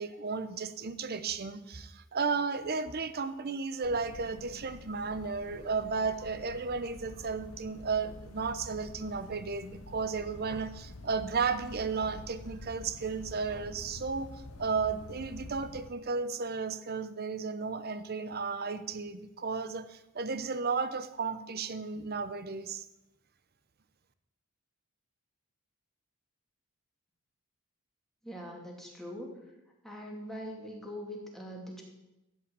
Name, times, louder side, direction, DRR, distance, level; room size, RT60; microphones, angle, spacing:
voice 1, 0.0-14.3 14.6-22.8, right 4 dB, 45° right, 12 dB, 0.8 m, -34 dB
sound 1, 3.8-15.9, left 2 dB, 80° left, 0.8 m, -48 dB
voice 2, 28.2-29.3 29.8-31.8, equal, ahead, -1 dB, 2.4 m, -42 dB
13.5 x 5.3 x 8.5 m, 0.95 s
head